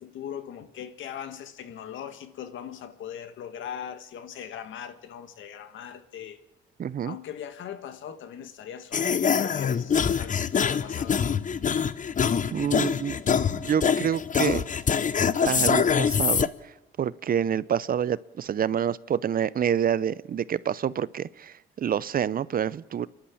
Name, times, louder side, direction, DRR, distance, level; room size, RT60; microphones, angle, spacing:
voice 1, 0.0-6.4 7.0-11.2, left 9 dB, 75° left, 1.8 m, -39 dB
voice 2, 6.8-7.2 12.5-13.2 13.5-14.6 15.5-16.7 17.0-23.1, right 8 dB, 45° right, 0.6 m, -27 dB
sound 1, 8.9-16.5, left 7 dB, 40° left, 0.8 m, -24 dB
28.5 x 11.5 x 8.6 m
cardioid pair, 90°, 20 cm